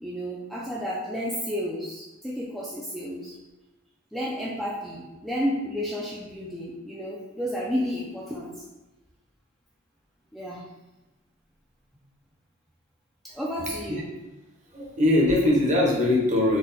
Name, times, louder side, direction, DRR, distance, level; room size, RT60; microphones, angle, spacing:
voice 1, 0.0-3.3 4.1-8.5 10.3-10.6 13.3-14.1, equal, ahead, -6 dB, 0.4 m, -31 dB
voice 2, 14.7-16.6, left 1 dB, 35° right, -3 dB, 0.9 m, -21 dB
4.1 x 2.3 x 4.0 m, 1.1 s
head